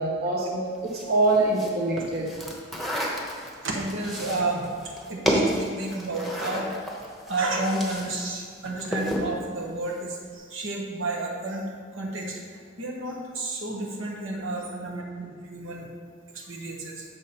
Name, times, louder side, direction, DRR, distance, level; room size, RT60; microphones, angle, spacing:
voice 1, 0.0-2.3, right 2 dB, 50° right, -3 dB, 1.2 m, -24 dB
sound 1, 0.9-8.2 8.5-9.3, equal, ahead, 1.1 m, -31 dB
voice 2, 3.6-6.7 7.3-15.9 16.3-17.0, right 2 dB, 75° right, -1 dB, 1.3 m, -31 dB
7.1 x 6.7 x 4.4 m, 2.1 s
head